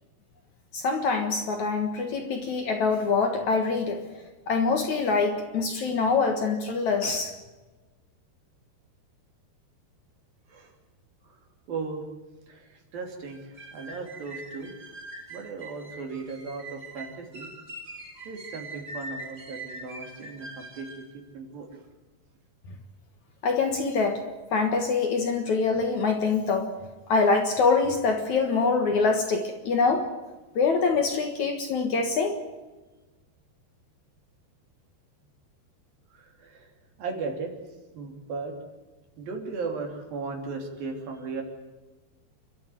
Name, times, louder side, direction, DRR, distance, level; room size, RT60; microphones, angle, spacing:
voice 1, 0.7-4.0 4.5-7.3 23.4-24.2 24.5-26.7 27.1-30.1 30.6-32.4, left 4 dB, 55° left, 2.5 m, -24 dB
voice 2, 11.7-12.0 12.5-14.7 15.3-17.5 18.3-21.1 21.3-21.7 36.1-36.7 37.0-37.5 38.0-38.5 39.2-41.4, right 4 dB, 60° right, 4.7 m, -36 dB
sound 1, 13.3-21.1, right 2 dB, 20° right, 1.8 m, -43 dB
29.0 x 13.0 x 9.3 m
omnidirectional pair, 4.7 m